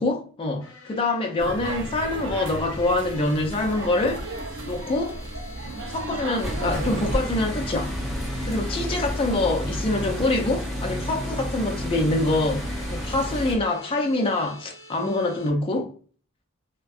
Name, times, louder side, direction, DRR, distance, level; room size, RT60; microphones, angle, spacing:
voice 1, 0.0-4.2 4.7-5.2 5.9-7.9 8.5-15.9, left 2 dB, 25° left, 0.4 m, -25 dB
sound 1, 0.6-15.5, left 2 dB, 75° left, 0.8 m, -46 dB
sound 2, 1.4-7.2, right 2 dB, 60° right, 0.5 m, -34 dB
sound 3, 6.4-13.6, equal, ahead, 0.7 m, -30 dB
2.5 x 2.1 x 2.4 m
head